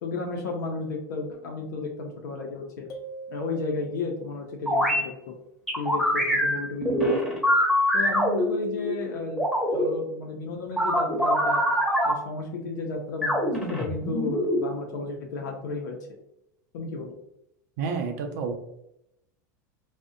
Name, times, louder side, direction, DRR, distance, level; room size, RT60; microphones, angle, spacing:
voice 1, 0.0-2.9 3.3-5.3 5.8-7.1 7.9-9.5 9.7-11.6 12.0-16.0 16.7-17.1, left 3 dB, 75° left, 0 dB, 0.4 m, -33 dB
sound 1, 2.9-4.4, right 4 dB, 35° left, 0.7 m, -42 dB
sound 2, 4.7-5.0 5.7-8.9 9.4-9.8 10.8-12.1 13.2-14.6, equal, ahead, 1.0 m, -24 dB
voice 2, 17.8-18.5, right 5 dB, 65° right, 4 dB, 0.5 m, -29 dB
2.4 x 2.0 x 2.5 m, 0.80 s
hypercardioid pair, 95°, 10 cm